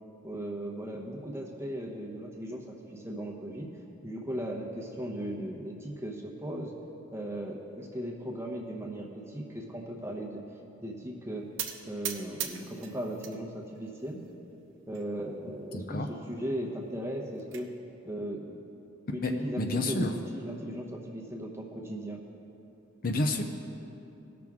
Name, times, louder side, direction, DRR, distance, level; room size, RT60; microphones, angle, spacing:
voice 1, 0.2-3.7 4.0-6.7 7.1-10.4 10.8-11.5 11.9-14.2 14.9-17.7 18.0-18.6 19.1-22.2, right 1 dB, 15° right, 0 dB, 0.9 m, -37 dB
sound 1, 11.6-13.4 13.7-14.4 14.9-15.0 15.3-15.4 15.8-15.9 17.0-17.6, right 9 dB, 70° right, 0.7 m, -39 dB
voice 2, 15.7-16.1 19.2-19.3 19.6-20.1 23.0-23.4, left 2 dB, 45° left, 4 dB, 0.5 m, -29 dB
17.5 x 6.0 x 3.6 m, 2.8 s
head